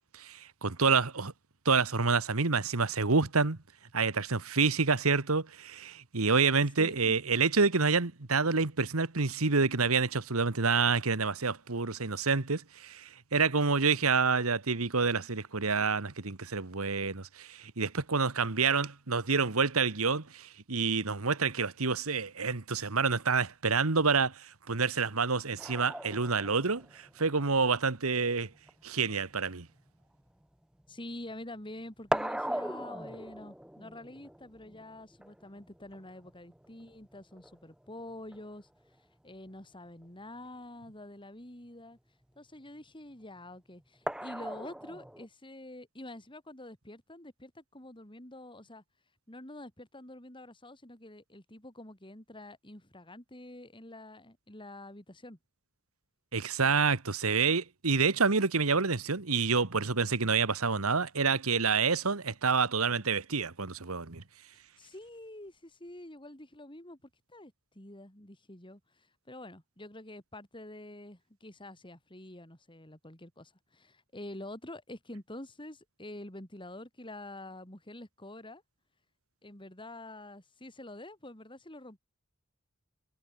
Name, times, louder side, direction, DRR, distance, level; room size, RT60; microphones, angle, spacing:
voice 1, 0.3-1.3 1.6-3.6 3.9-28.5 28.8-29.7 56.3-64.2, right 4 dB, 90° right, 1.6 m, -28 dB
voice 2, 6.8-7.2 30.9-38.7 39.2-42.0 42.4-48.8 49.3-55.4 64.8-78.6 79.4-82.0, left 1 dB, 25° left, 4.4 m, -47 dB
sound 1, 25.6-31.3 31.6-38.6 40.0-40.1 40.5-40.6 44.1-45.3, right 1 dB, 5° right, 0.7 m, -40 dB
head